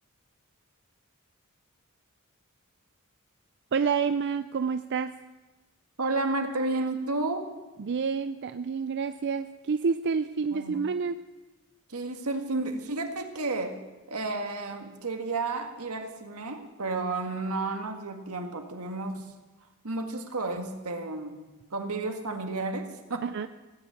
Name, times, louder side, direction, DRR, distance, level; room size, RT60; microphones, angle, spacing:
voice 1, 3.7-5.1 7.8-11.2 23.2-23.5, right 5 dB, 50° right, 11 dB, 0.4 m, -28 dB
voice 2, 6.0-7.5 10.5-10.8 11.9-13.8 14.1-19.3 19.8-21.4 21.7-23.3, right 3 dB, 80° right, 5 dB, 1.8 m, -32 dB
16.0 x 8.7 x 8.4 m, 1.1 s
head